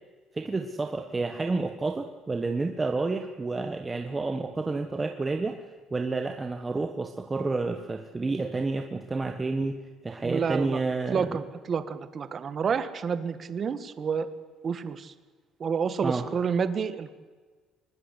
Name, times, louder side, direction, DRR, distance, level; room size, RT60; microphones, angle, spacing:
voice 1, 0.3-9.8 10.0-11.4 16.0-16.2, right 3 dB, 15° right, 5 dB, 1.3 m, -30 dB
voice 2, 10.2-10.8 11.1-14.3 14.6-15.1 15.6-17.1, right 6 dB, 35° right, 12 dB, 1.6 m, -29 dB
23.5 x 20.5 x 8.3 m, 1.4 s
cardioid pair, 145°, 0 cm